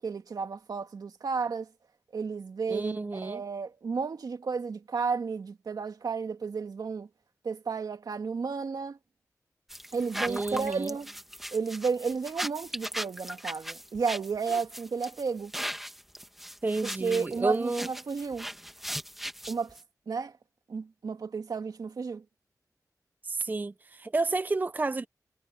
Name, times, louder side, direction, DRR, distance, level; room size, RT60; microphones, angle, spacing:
voice 1, 0.0-1.7 2.1-7.1 7.4-9.0 9.9-11.1 11.5-15.5 16.8-18.5 19.5-19.8 20.1-20.3 20.7-22.2, right 5 dB, 75° right, 1.9 m, -32 dB
voice 2, 2.7-3.4 10.3-11.0 16.6-17.9 23.2-25.1, right 3 dB, 25° right, 0.5 m, -30 dB
sound 1, 9.7-19.8, equal, 5° right, 1.9 m, -38 dB
wide cardioid pair, 105°, 7 cm